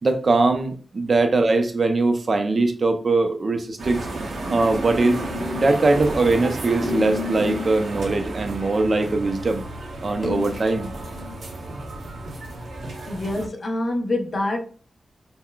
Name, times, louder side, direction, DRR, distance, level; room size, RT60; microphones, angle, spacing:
voice 1, 0.0-4.1 4.5-5.2 5.6-9.6 10.0-10.9, right 3 dB, 40° right, 0.5 m, -21 dB
sound 1, 3.8-13.5, right 2 dB, 85° right, 0.8 m, -32 dB
sound 2, 5.0-5.8 6.8-7.8 10.2-11.3, left 5 dB, 20° left, 1.5 m, -32 dB
voice 2, 13.1-14.6, left 2 dB, 40° left, 0.7 m, -25 dB
5.7 x 2.1 x 2.2 m
wide cardioid pair, 160°, 0 cm